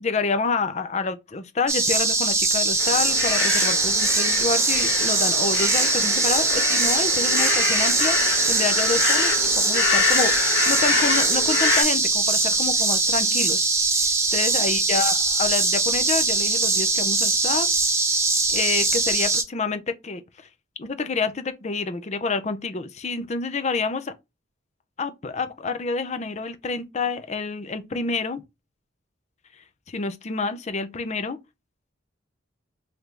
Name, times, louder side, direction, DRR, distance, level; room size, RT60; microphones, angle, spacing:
voice 1, 0.0-13.6 14.0-17.7 18.5-20.5 20.8-24.1 25.0-28.4 29.9-31.4, left 4 dB, 35° left, 0.5 m, -28 dB
sound 1, 1.7-19.4, right 3 dB, 15° right, 0.6 m, -22 dB
sound 2, 2.8-11.8, left 5 dB, 55° left, 1.9 m, -26 dB
3.3 x 2.6 x 4.5 m
head